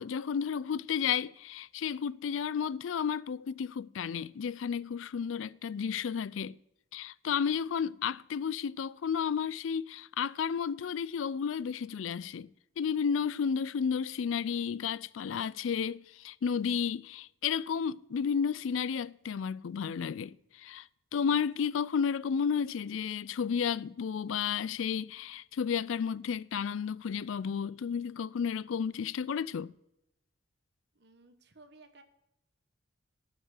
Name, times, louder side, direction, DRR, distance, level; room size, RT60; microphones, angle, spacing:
voice 1, 0.0-6.5 6.9-12.5 12.8-20.9 21.1-29.7, left 7 dB, 80° left, 0.4 m, -32 dB
voice 2, 30.9-32.0, right 3 dB, 55° right, 1.2 m, -57 dB
12.5 x 6.1 x 8.1 m
head